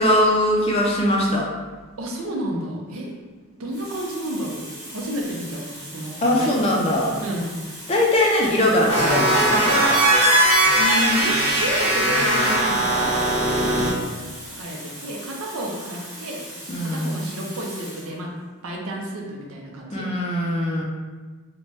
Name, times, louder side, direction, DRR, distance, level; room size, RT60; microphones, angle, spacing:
voice 1, 0.0-1.4 6.2-7.2 7.9-9.9 16.7-17.2 19.9-20.8, left 1 dB, 25° left, -2 dB, 0.4 m, -21 dB
voice 2, 2.0-3.1 3.6-6.8 7.2-7.6 10.8-14.0 14.5-16.5 16.8-18.3 18.6-20.1, right 1 dB, 75° right, 0 dB, 0.5 m, -31 dB
Water tap faucet, 2.9-3.1 3.7-18.2 19.1-19.3, equal, 5° right, 0.8 m, -39 dB
sound 1, 8.9-13.9, right 1 dB, 30° right, 0.7 m, -19 dB
2.6 x 2.1 x 3.2 m, 1.3 s
head